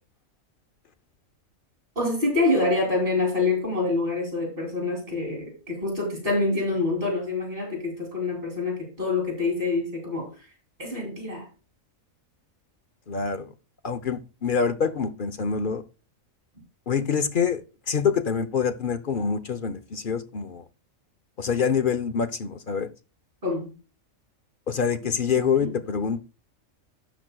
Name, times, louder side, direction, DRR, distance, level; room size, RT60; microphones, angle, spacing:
voice 1, 1.9-10.3 10.8-11.5 23.4-23.7 25.6-25.7, left 3 dB, 40° right, 3.4 m, -26 dB
voice 2, 13.1-13.5 13.8-15.8 16.9-20.6 21.4-22.9 24.7-26.2, left 6 dB, 50° left, 0.7 m, -26 dB
12.0 x 8.1 x 2.3 m
omnidirectional pair, 1.4 m